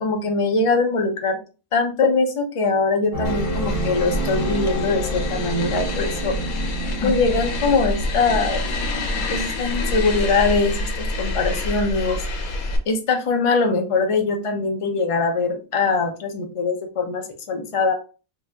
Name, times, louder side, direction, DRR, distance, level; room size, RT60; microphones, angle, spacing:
voice 1, 0.0-1.4 1.7-6.4 7.0-8.6 9.3-12.2 12.9-17.9, left 3 dB, 45° left, 4 dB, 0.4 m, -22 dB
Mystical Music, 3.1-8.3, right 2 dB, 20° right, 0.6 m, -30 dB
sound 1, 3.2-12.8, left 2 dB, 85° left, 1.3 m, -26 dB
3.2 x 2.5 x 3.3 m, 0.33 s
omnidirectional pair, 1.5 m